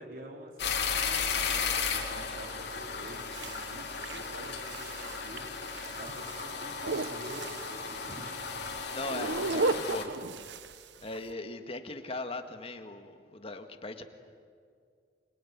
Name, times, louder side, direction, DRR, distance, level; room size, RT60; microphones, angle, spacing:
voice 1, 0.0-5.5 5.8-8.4 9.2-9.5 10.0-10.3, right 1 dB, 55° right, 1 dB, 4.5 m, -47 dB
sound 1, 0.6-10.0, left 5 dB, 65° left, 3.5 m, -35 dB
sound 2, 3.1-11.3, right 3 dB, 75° right, 1.0 m, -36 dB
voice 2, 8.9-10.1 11.0-14.0, left 2 dB, 35° left, 6 dB, 1.8 m, -39 dB
25.5 x 23.5 x 9.5 m, 2.2 s
head